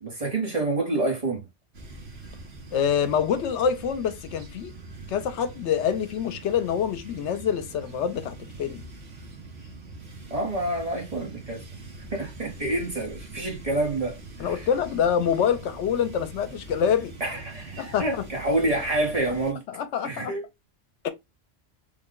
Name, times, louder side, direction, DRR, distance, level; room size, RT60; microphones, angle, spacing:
voice 1, 0.0-1.4 10.3-11.6 12.1-14.6 17.2-19.6 20.0-20.4, right 2 dB, 35° right, 1.0 m, -28 dB
sound 1, 1.7-19.5, right 2 dB, 65° right, 1.2 m, -43 dB
voice 2, 2.7-4.7 5.1-8.8 14.4-17.1 17.8-18.3 19.7-20.4 21.0-21.1, left 8 dB, 80° left, 0.9 m, -26 dB
3.4 x 2.1 x 3.6 m
omnidirectional pair, 1.2 m